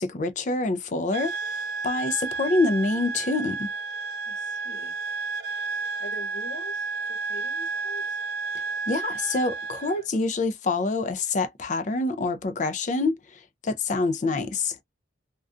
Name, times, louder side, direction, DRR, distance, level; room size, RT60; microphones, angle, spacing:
voice 1, 0.0-1.3 1.8-3.7 8.9-13.2 13.6-14.7, left 3 dB, 40° left, 0.4 m, -26 dB
sound 1, 1.1-10.0, right 4 dB, 55° right, 0.5 m, -32 dB
voice 2, 4.2-4.9 6.0-8.2, left 1 dB, 75° left, 1.2 m, -44 dB
2.3 x 2.3 x 2.4 m
head